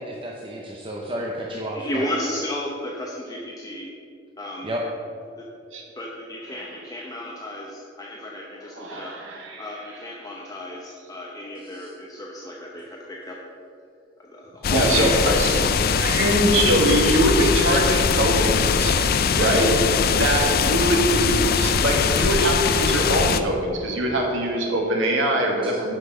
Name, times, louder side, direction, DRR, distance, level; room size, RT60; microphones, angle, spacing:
voice 1, 0.0-2.0 4.6-4.8 11.7-11.9 18.3-18.4, right 1 dB, 25° right, -2 dB, 0.8 m, -32 dB
voice 2, 1.5-3.9 4.4-4.7 5.4-5.5 6.0-9.1 9.6-13.4 14.2-16.0, left 1 dB, 20° left, -2 dB, 0.8 m, -33 dB
voice 3, 8.8-9.6 14.7-15.6 16.0-19.0 19.4-19.7 20.1-25.9, right 1 dB, 85° right, 0 dB, 1.7 m, -22 dB
sound 1, 14.6-23.4, left 5 dB, 50° left, 0.4 m, -21 dB
10.0 x 5.8 x 5.5 m, 2.4 s
head